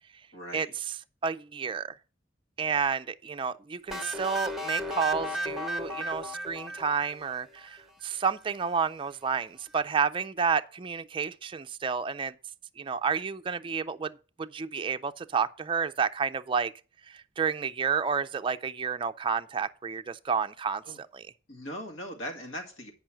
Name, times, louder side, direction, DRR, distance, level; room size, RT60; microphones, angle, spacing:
voice 1, 0.3-0.7 20.8-21.0 21.5-22.9, equal, 90° left, 1.9 m, -39 dB
voice 2, 1.2-1.9 2.6-12.3 12.8-16.7 17.1-21.2, right 6 dB, 25° right, 0.4 m, -30 dB
sound 1, 3.9-7.7, equal, ahead, 0.8 m, -35 dB
8.9 x 5.5 x 5.8 m
head